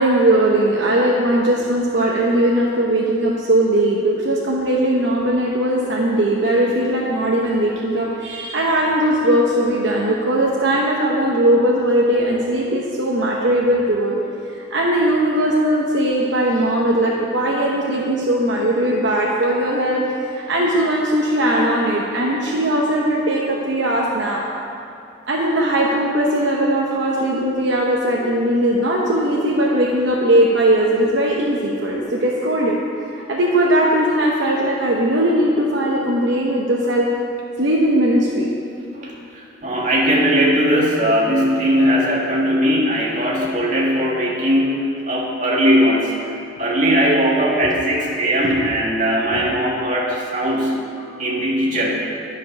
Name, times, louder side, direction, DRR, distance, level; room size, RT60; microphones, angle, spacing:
voice 1, 0.0-14.2 14.7-24.4 25.3-32.8 33.1-37.1 37.6-38.5 47.6-47.7 48.4-48.6 49.3-49.5, right 1 dB, 65° right, -3 dB, 0.8 m, -19 dB
voice 2, 38.9-46.2 46.6-50.8 51.2-51.9, equal, 40° right, -4 dB, 1.6 m, -19 dB
11.0 x 5.3 x 6.0 m, 2.6 s
head